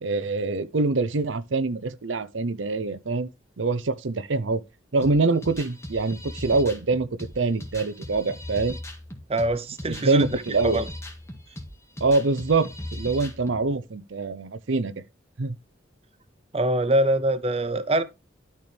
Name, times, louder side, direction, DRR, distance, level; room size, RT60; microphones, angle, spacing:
voice 1, 0.0-3.3 3.6-4.6 4.9-7.1 7.4-8.8 10.0-10.8 12.0-14.9 15.4-15.6, right 3 dB, 70° right, 0.7 m, -24 dB
sound 1, 5.0-13.6, left 1 dB, 15° left, 1.8 m, -38 dB
voice 2, 9.3-10.9 16.5-18.0, right 1 dB, 30° right, 0.7 m, -24 dB
12.0 x 4.5 x 3.4 m
head